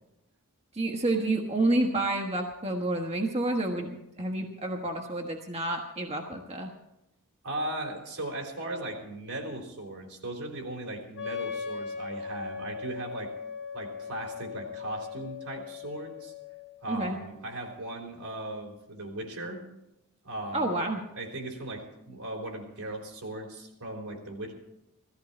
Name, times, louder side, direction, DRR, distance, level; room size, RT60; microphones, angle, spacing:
voice 1, 0.7-3.9 4.2-6.7 16.9-17.2 20.5-21.0, right 2 dB, 30° right, 1 dB, 1.3 m, -29 dB
voice 2, 7.4-13.3 13.7-16.3 16.8-19.6 20.2-20.7 21.2-24.5, right 1 dB, 75° right, 2 dB, 3.9 m, -38 dB
Wind instrument woodwind instrument, 11.1-16.8, left 6 dB, 55° left, 1.8 m, -39 dB
17.0 x 14.5 x 4.3 m, 0.86 s
head